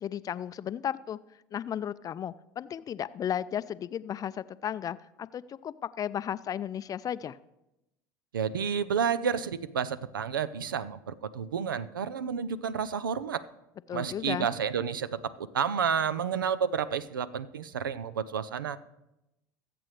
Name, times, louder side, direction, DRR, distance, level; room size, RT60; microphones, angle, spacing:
voice 1, 0.0-1.2 1.5-7.4 13.9-14.5, left 9 dB, 35° left, 16 dB, 0.4 m, -34 dB
voice 2, 8.3-13.4 13.9-18.8, right 7 dB, 90° right, 17 dB, 0.5 m, -30 dB
22.0 x 7.7 x 3.2 m, 0.91 s
hypercardioid pair, 75°, 11 cm